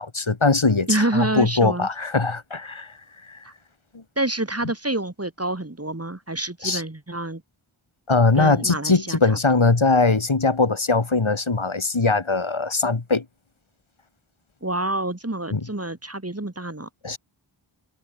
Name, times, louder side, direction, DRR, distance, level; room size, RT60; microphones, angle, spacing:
voice 1, 0.0-2.9 3.3-3.4 3.9-4.0 6.6-6.8 8.1-13.3 15.5-15.6 17.0-17.2, left 3 dB, 80° left, 5.1 m, -21 dB
voice 2, 0.9-1.9 3.4-3.5 4.2-7.4 8.3-9.4 14.6-16.9, right 2 dB, 30° right, 4.0 m, -27 dB
wide cardioid pair, 55°, 47 cm